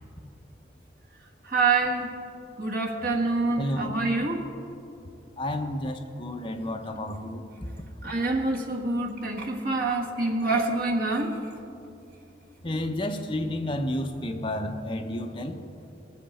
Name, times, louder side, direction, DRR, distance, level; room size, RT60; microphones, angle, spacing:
voice 1, 1.5-2.1 2.6-4.4 8.0-11.4, right 3 dB, 50° right, 0 dB, 1.5 m, -26 dB
voice 2, 3.6-3.9 5.4-7.4 12.6-15.6, left 1 dB, 25° left, 4 dB, 0.8 m, -31 dB
19.5 x 7.9 x 4.2 m, 2.7 s
head